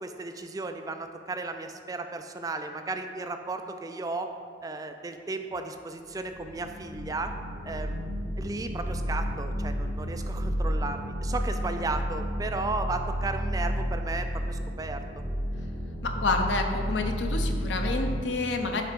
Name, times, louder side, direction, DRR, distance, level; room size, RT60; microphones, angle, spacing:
voice 1, 0.0-4.3 4.6-7.3 7.6-8.0 8.4-15.0, right 3 dB, 20° right, 6 dB, 0.3 m, -34 dB
sound 1, 6.1-18.3, equal, ahead, 1.6 m, -31 dB
voice 2, 16.0-18.8, left 3 dB, 80° left, 4 dB, 0.6 m, -28 dB
7.4 x 3.4 x 5.1 m, 2.2 s
head